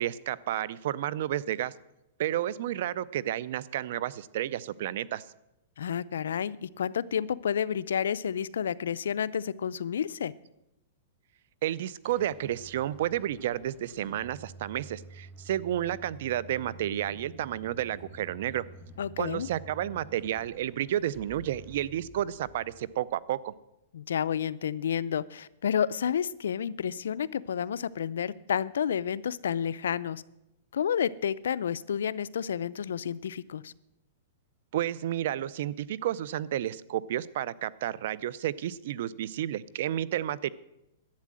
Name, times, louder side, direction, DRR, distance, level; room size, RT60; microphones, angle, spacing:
voice 1, 0.0-1.7 2.2-5.2 11.6-18.6 19.2-23.5 34.7-40.5, right 12 dB, 60° right, 20 dB, 0.5 m, -31 dB
voice 2, 5.8-10.3 19.0-19.5 23.9-30.2 30.7-33.7, left 8 dB, 85° left, 17 dB, 0.5 m, -30 dB
sound 1, 11.8-23.4, right 1 dB, 5° right, 1.3 m, -50 dB
11.5 x 8.4 x 7.5 m, 0.89 s
hypercardioid pair, 150°, 0 cm